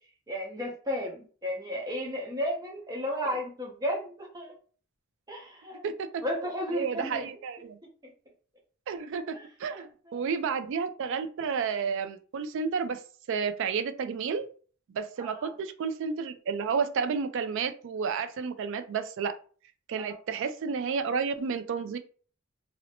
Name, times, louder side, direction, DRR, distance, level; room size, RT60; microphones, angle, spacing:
voice 1, 0.3-4.5 5.3-5.8 6.2-7.3 8.0-8.1 9.3-10.2 15.2-15.5 20.0-20.2, equal, 15° right, -1 dB, 0.7 m, -34 dB
voice 2, 6.4-7.8 8.9-13.0 13.3-14.5 14.9-19.3 19.9-22.0, right 5 dB, 55° right, 10 dB, 0.3 m, -31 dB
2.5 x 2.1 x 2.8 m, 0.41 s
head